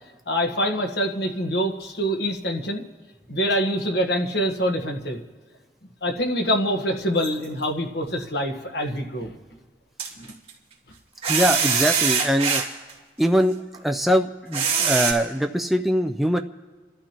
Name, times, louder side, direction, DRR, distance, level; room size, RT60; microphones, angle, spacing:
voice 1, 0.3-2.8 3.3-5.2 6.0-9.3 10.2-10.3, equal, 70° left, 3 dB, 1.4 m, -25 dB
sound 1, 7.2-7.6 10.0-10.5 11.2-12.9 13.7-13.8 14.5-15.1, right 6 dB, 35° right, 2.3 m, -22 dB
voice 2, 11.3-12.6 13.2-13.6 13.8-16.4, equal, ahead, 5 dB, 0.4 m, -22 dB
29.5 x 12.5 x 3.0 m, 1.4 s
head